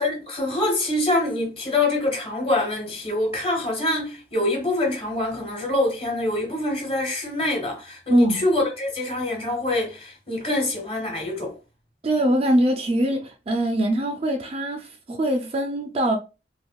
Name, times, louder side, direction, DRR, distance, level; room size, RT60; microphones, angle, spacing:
voice 1, 0.0-11.5, left 2 dB, 35° left, 1.2 m, -25 dB
voice 2, 8.1-8.4 12.0-16.2, right 1 dB, 35° right, 0.4 m, -22 dB
3.5 x 2.5 x 2.2 m
head